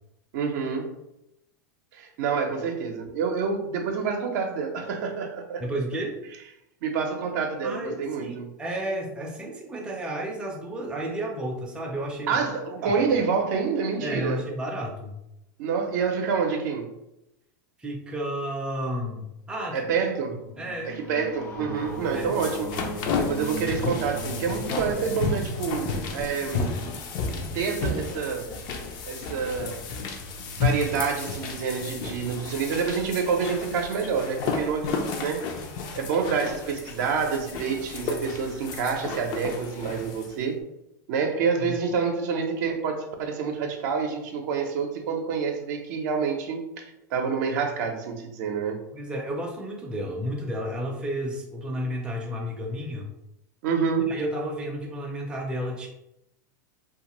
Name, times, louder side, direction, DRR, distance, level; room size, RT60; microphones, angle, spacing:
voice 1, 0.3-0.9 1.9-5.6 6.8-8.5 12.3-14.4 15.6-16.9 19.7-20.4 20.8-22.9 23.2-26.8 27.3-28.5 29.1-29.8 30.5-35.5 36.0-40.6 41.1-48.8 53.6-54.1, right 5 dB, 65° right, 3 dB, 0.6 m, -28 dB
voice 2, 5.6-6.2 7.6-12.5 12.8-13.0 14.0-15.2 17.8-19.9 20.3-21.0 22.1-22.3 41.6-41.8 48.9-53.1 54.1-55.9, right 1 dB, 10° right, -1 dB, 0.5 m, -32 dB
sound 1, 20.0-27.2, left 1 dB, 80° left, 0.7 m, -39 dB
sound 2, 21.9-40.3, left 4 dB, 45° left, 0.4 m, -32 dB
2.5 x 2.4 x 2.9 m, 0.85 s
supercardioid pair, 125°, 10 cm